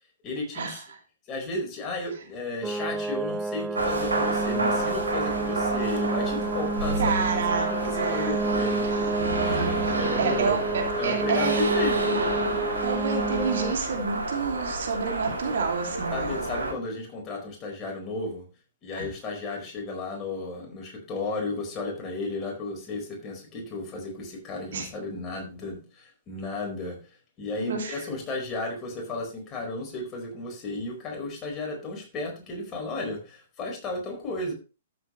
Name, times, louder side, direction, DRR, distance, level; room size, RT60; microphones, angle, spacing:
voice 1, 0.2-0.8 1.3-8.9 9.4-10.7 11.0-12.2 16.1-18.4 18.8-27.0 27.4-34.5, left 2 dB, 25° left, 1 dB, 4.6 m, -34 dB
sound 1, 2.6-13.7, right 2 dB, 10° right, 0.5 m, -30 dB
sound 2, 3.7-16.7, right 2 dB, 70° right, 4.4 m, -29 dB
voice 2, 7.0-8.4 8.9-9.1 9.4-11.7 12.8-16.4 18.9-19.1 24.7-24.9 27.6-28.0, right 5 dB, 55° right, 2 dB, 2.6 m, -29 dB
13.0 x 7.9 x 3.1 m, 0.33 s
figure-of-eight pair, 115°, 0 cm